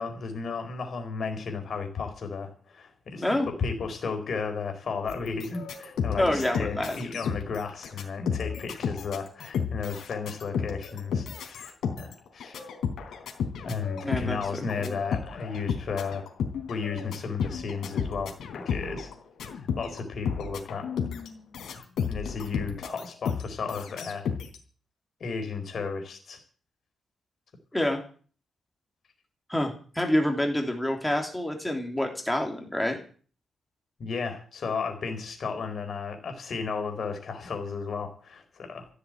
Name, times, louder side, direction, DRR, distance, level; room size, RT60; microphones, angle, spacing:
voice 1, 0.0-12.6 13.6-16.2 16.7-19.1 19.8-20.8 22.1-24.2 25.2-26.4 34.0-38.9, left 5 dB, 45° left, 5 dB, 4.6 m, -34 dB
sound 1, 5.1-20.0 20.3-24.6, left 7 dB, 80° left, 3.7 m, -33 dB
voice 2, 6.2-7.0 14.0-15.0 27.7-28.0 29.5-33.0, left 1 dB, 5° left, 2 dB, 3.2 m, -27 dB
15.0 x 8.4 x 8.8 m, 0.41 s
wide cardioid pair, 170°, 0 cm